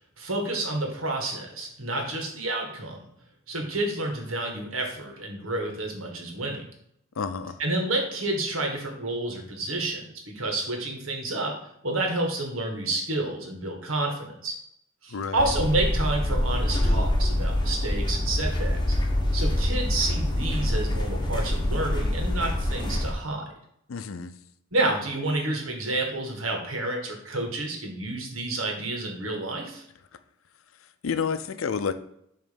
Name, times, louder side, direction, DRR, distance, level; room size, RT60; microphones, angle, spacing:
voice 1, 0.2-3.0 3.5-6.6 7.6-11.5 11.8-14.5 15.0-19.0 19.3-23.4 24.7-29.8, right 2 dB, 85° right, 1 dB, 1.7 m, -29 dB
voice 2, 7.2-7.6 15.1-15.5 23.9-24.3 30.8-31.9, left 6 dB, 80° left, 11 dB, 0.5 m, -30 dB
sound 1, 15.4-23.1, left 1 dB, 25° left, 1.0 m, -25 dB
7.0 x 3.2 x 5.2 m, 0.74 s
head